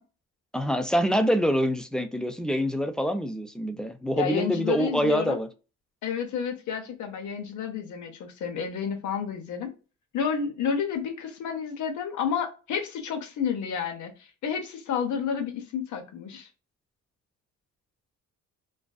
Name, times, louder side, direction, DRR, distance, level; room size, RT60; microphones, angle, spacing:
voice 1, 0.5-5.5, equal, 5° left, 0.3 m, -25 dB
voice 2, 4.2-5.4 6.0-9.7 10.1-16.5, left 7 dB, 75° left, 0.8 m, -30 dB
2.5 x 2.3 x 2.3 m
cardioid pair, 90°, 30 cm